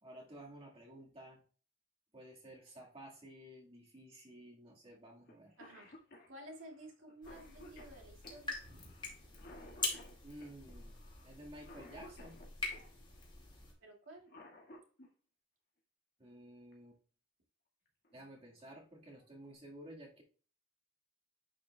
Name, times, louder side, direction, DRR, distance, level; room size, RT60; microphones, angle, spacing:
voice 1, 0.0-1.4 2.1-5.6 10.2-12.4 16.2-17.0 18.1-20.2, right 1 dB, 30° right, -2 dB, 1.8 m, -53 dB
Cough, 5.3-5.4 5.6-12.9 14.0-15.1 16.7-16.8 17.9-18.1 18.6-18.7 19.1-19.5, left 1 dB, 55° left, 1.9 m, -56 dB
voice 2, 5.6-9.0 13.8-14.3, right 1 dB, 80° right, 0 dB, 2.3 m, -54 dB
sound 1, 7.2-13.7, left 3 dB, 25° left, 2.6 m, -44 dB
10.5 x 5.3 x 2.3 m, 0.40 s
head